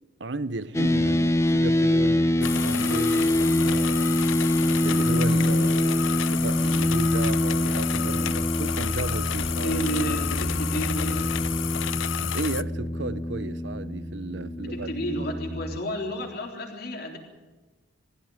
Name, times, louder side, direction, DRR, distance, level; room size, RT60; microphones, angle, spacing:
voice 1, 0.2-4.1 4.8-6.0 6.3-9.7 12.2-14.9, right 2 dB, 65° right, 0.9 m, -34 dB
sound 1, 0.7-15.8, left 1 dB, 15° left, 0.8 m, -25 dB
sound 2, 2.4-12.6, left 11 dB, 80° left, 0.6 m, -31 dB
sound 3, 5.0-11.4, left 1 dB, 35° left, 1.3 m, -43 dB
voice 2, 9.6-11.4 14.6-17.2, right 1 dB, 50° left, 3.8 m, -31 dB
20.5 x 15.0 x 9.7 m
head